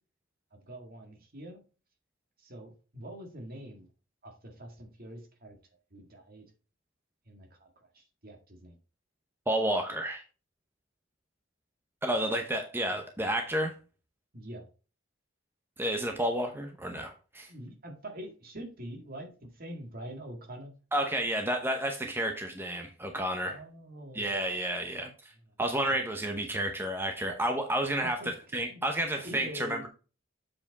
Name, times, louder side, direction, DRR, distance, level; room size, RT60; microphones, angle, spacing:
voice 1, 0.5-1.6 2.4-3.9 4.2-5.6 5.9-6.5 7.3-8.8 14.3-14.7 17.5-20.7 23.5-24.4 25.9-26.0 28.0-28.3 28.7-28.8 29.2-29.9, equal, 50° right, 1.9 m, -45 dB
voice 2, 9.5-10.2 12.0-13.7 15.8-17.5 20.9-23.5 24.1-25.3 25.6-28.2 28.5-29.8, right 1 dB, 10° right, 0.8 m, -31 dB
7.6 x 4.8 x 4.0 m
head